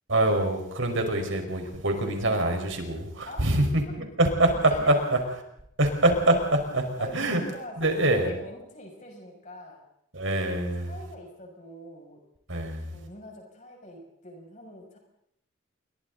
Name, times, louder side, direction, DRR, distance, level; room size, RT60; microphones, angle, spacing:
voice 1, 0.1-3.8 4.2-4.5 4.9-5.2 5.8-7.4 7.8-8.3 10.1-10.9 12.5-13.0, right 1 dB, 70° right, 4 dB, 4.8 m, -25 dB
voice 2, 3.2-4.1 4.7-5.0 7.0-9.8 10.8-12.2 12.8-15.0, equal, 35° left, 1 dB, 6.7 m, -43 dB
29.5 x 24.0 x 4.0 m, 0.74 s
head